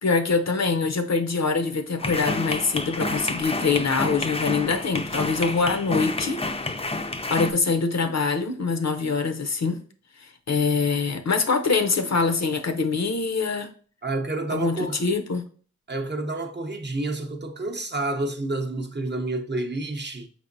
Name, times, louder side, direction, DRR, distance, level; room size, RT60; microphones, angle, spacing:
voice 1, 0.0-6.4 6.8-9.8 10.2-13.7 14.5-15.4, left 4 dB, 60° left, 0.6 m, -24 dB
sound 1, 2.0-7.5, left 2 dB, 20° left, 0.4 m, -29 dB
voice 2, 14.0-15.0 15.9-20.3, right 2 dB, 35° right, 0.6 m, -29 dB
5.0 x 3.3 x 2.6 m
cardioid pair, 40°, 30 cm